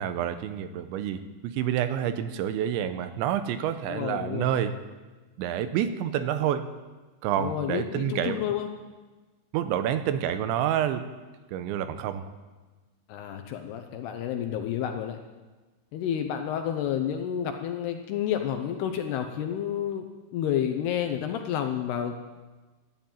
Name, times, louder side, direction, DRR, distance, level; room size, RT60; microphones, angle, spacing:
voice 1, 0.0-4.7 5.4-6.7 7.2-8.4 9.5-11.1 11.5-12.2, right 10 dB, 85° right, 10 dB, 3.1 m, -28 dB
voice 2, 3.9-4.6 7.4-8.7 13.1-15.2 15.9-20.1 20.3-22.3, left 9 dB, 75° left, 5 dB, 2.6 m, -30 dB
14.0 x 10.5 x 9.0 m, 1.3 s
omnidirectional pair, 5.3 m